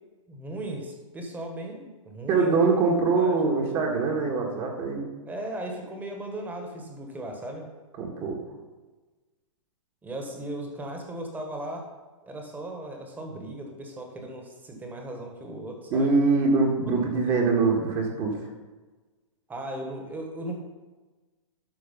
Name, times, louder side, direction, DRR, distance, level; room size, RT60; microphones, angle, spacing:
voice 1, 0.3-2.6 3.2-3.4 5.3-7.7 10.0-11.9 12.2-16.1 16.9-17.1 19.5-20.6, right 1 dB, 10° right, 2 dB, 1.6 m, -37 dB
voice 2, 2.3-5.1 8.0-8.4 15.9-18.4, right 4 dB, 30° right, 0 dB, 1.8 m, -23 dB
12.5 x 4.6 x 5.5 m, 1.3 s
hypercardioid pair, 135°, 17 cm